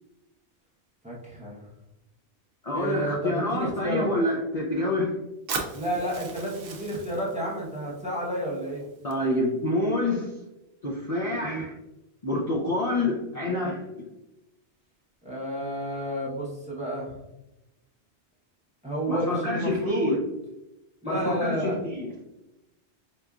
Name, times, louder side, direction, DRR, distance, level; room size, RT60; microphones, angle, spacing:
voice 1, 1.0-1.6 2.7-4.1 5.7-8.8 11.4-11.6 15.2-17.2 18.8-20.2 21.0-21.8, right 1 dB, 5° right, -5 dB, 0.7 m, -31 dB
voice 2, 2.6-5.1 9.0-10.4 10.8-11.7 12.2-14.1 19.1-20.2 21.0-22.1, left 1 dB, 45° left, -5 dB, 0.5 m, -27 dB
Fire, 5.5-9.5, right 4 dB, 60° right, 0.7 m, -39 dB
4.6 x 2.5 x 2.3 m, 0.96 s
omnidirectional pair, 1.2 m